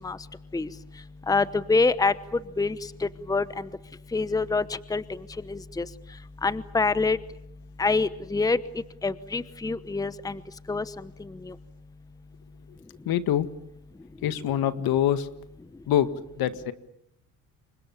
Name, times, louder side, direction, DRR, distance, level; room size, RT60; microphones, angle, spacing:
voice 1, 1.3-2.1 2.6-3.7 4.1-5.9 6.4-7.2 7.8-8.6 9.0-10.4 10.7-11.5, left 3 dB, 10° left, 16 dB, 1.0 m, -26 dB
voice 2, 13.1-13.5 14.2-15.3 15.9-16.1 16.4-16.7, left 11 dB, 65° left, 12 dB, 1.9 m, -24 dB
29.0 x 24.5 x 7.2 m, 0.74 s
supercardioid pair, 90°, 39 cm